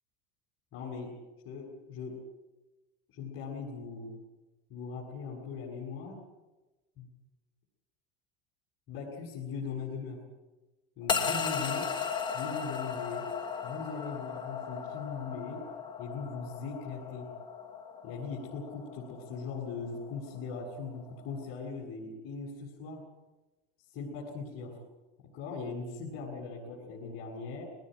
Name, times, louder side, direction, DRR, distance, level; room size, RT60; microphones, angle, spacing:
voice 1, 0.7-1.2 1.4-2.2 3.1-4.2 4.7-6.2 7.0-7.1 8.9-10.2 11.0-11.9 12.3-13.3 13.6-15.7 16.0-17.3 18.0-23.0 23.9-24.8 25.3-27.6, left 4 dB, 45° left, -5 dB, 7.5 m, -40 dB
sound 1, 11.1-21.4, left 6 dB, 15° left, 2.2 m, -36 dB
22.0 x 19.5 x 9.3 m, 1.1 s
cardioid pair, 145°, 29 cm